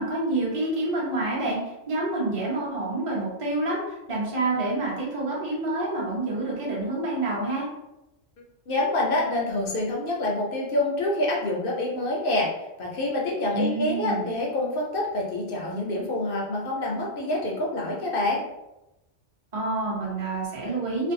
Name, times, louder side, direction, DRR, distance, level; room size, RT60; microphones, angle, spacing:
voice 1, 0.0-1.6 1.9-7.7 13.5-14.3 19.5-21.1, right 2 dB, 30° right, -5 dB, 0.7 m, -28 dB
voice 2, 8.7-12.5 12.8-18.4, left 1 dB, 60° left, -2 dB, 0.6 m, -26 dB
2.5 x 2.1 x 2.6 m, 0.94 s
omnidirectional pair, 1.3 m